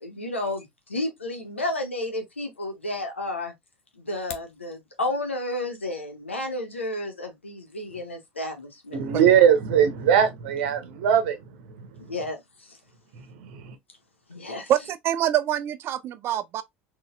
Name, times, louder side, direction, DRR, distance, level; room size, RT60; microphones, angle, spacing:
voice 1, 0.0-3.5 3.9-9.0 12.0-12.8 14.3-14.7, left 1 dB, 80° left, 0.9 m, -32 dB
sound 1, 4.0-4.6, left 8 dB, 45° left, 0.6 m, -41 dB
voice 2, 8.9-11.4 11.8-11.9 13.2-13.8, right 8 dB, 60° right, 0.8 m, -21 dB
voice 3, 14.7-16.6, right 11 dB, 40° right, 0.4 m, -25 dB
3.9 x 2.4 x 2.3 m
figure-of-eight pair, 70°, 6 cm